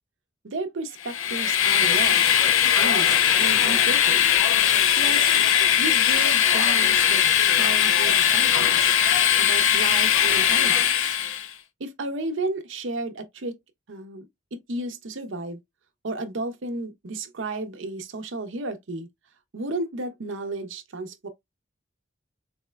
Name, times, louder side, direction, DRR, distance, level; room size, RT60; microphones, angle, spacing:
voice 1, 0.4-2.3 2.8-4.3 5.0-5.3 5.8-7.2 7.5-9.0 9.4-11.2 11.8-13.6 13.9-14.2 14.5-15.6 16.0-19.1 19.5-21.3, right 2 dB, 70° right, 0.6 m, -33 dB
Train, 1.0-11.5, left 9 dB, 85° left, 0.4 m, -20 dB
4.0 x 2.1 x 2.2 m
head